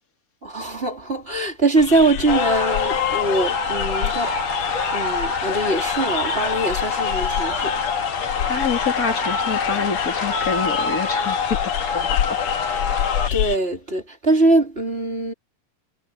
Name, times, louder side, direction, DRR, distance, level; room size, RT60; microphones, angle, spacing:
voice 1, 0.4-4.3 4.9-7.7 13.3-15.3, right 2 dB, 20° right, 4.0 m, -22 dB
sound 1, 1.8-13.6, left 11 dB, 70° left, 1.5 m, -30 dB
sound 2, 2.3-13.3, left 5 dB, 85° left, 5.6 m, -25 dB
voice 2, 8.2-11.6 11.9-12.2, left 5 dB, 30° left, 3.4 m, -27 dB
omnidirectional pair, 3.4 m